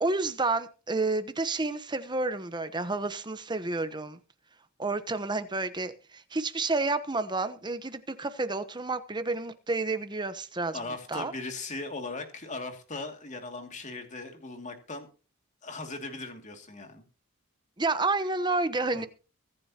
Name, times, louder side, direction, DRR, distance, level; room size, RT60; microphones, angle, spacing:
voice 1, 0.0-4.2 4.8-10.8 11.1-11.3 17.8-19.1, right 3 dB, 20° right, 1.0 m, -30 dB
voice 2, 10.7-15.1 15.6-17.0 18.9-19.1, left 3 dB, 35° left, 2.5 m, -38 dB
23.5 x 10.5 x 2.9 m
head